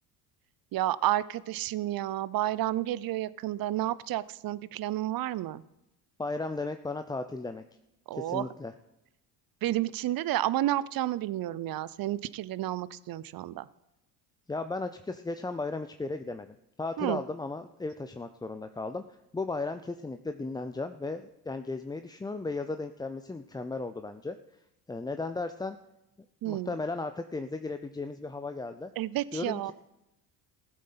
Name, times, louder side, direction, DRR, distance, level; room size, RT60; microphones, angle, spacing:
voice 1, 0.7-5.6 8.1-8.4 9.6-13.7 17.0-17.2 26.4-26.7 29.0-29.7, right 14 dB, 45° right, 19 dB, 0.7 m, -31 dB
voice 2, 6.2-7.6 8.1-8.7 14.5-19.0 19.3-24.4 24.9-25.8 26.4-28.9 29.3-29.7, left 3 dB, 10° left, 8 dB, 0.5 m, -35 dB
15.5 x 7.5 x 5.7 m, 0.91 s
hypercardioid pair, 65°, 50 cm